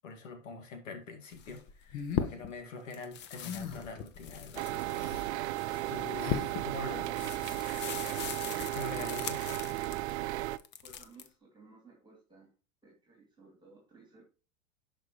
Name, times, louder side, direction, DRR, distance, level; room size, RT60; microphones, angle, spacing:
voice 1, 0.0-5.1 5.9-7.2 7.5-8.0 8.7-9.6, left 3 dB, 80° left, 5 dB, 2.2 m, -44 dB
sound 1, 1.3-2.6 2.9-10.2 10.6-11.3, left 8 dB, 30° left, 0.7 m, -40 dB
sound 2, 1.9-2.3 3.4-3.9 4.9-5.3 6.2-6.5, left 7 dB, 50° left, 1.5 m, -40 dB
sound 3, 4.6-10.6, right 16 dB, 60° right, 0.6 m, -35 dB
voice 2, 10.8-12.5 12.8-14.3, right 3 dB, 10° right, 0 dB, 2.6 m, -58 dB
11.0 x 5.2 x 3.1 m, 0.34 s
hypercardioid pair, 115°, 38 cm